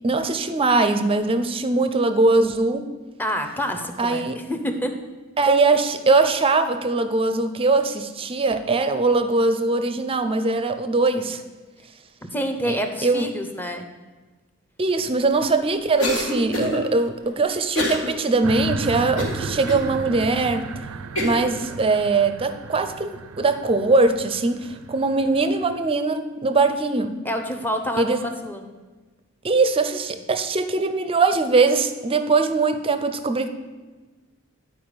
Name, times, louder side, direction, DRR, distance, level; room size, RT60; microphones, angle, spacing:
voice 1, 0.0-2.9 4.0-4.4 5.4-11.4 12.7-12.8 13.0-13.3 14.8-20.7 21.2-27.2 28.0-28.2 29.4-33.5, right 3 dB, 25° right, 9 dB, 0.5 m, -21 dB
voice 2, 3.2-5.0 12.2-13.9 27.2-28.6, equal, 10° left, 5 dB, 0.7 m, -28 dB
Cough, 16.0-16.8 17.7-18.1 18.5-18.6 19.2-19.8 20.4-20.5 21.2-21.5, left 2 dB, 70° left, 1.6 m, -26 dB
sound 1, 18.4-25.9, right 4 dB, 85° right, 0.4 m, -35 dB
10.0 x 4.6 x 5.1 m, 1.3 s
head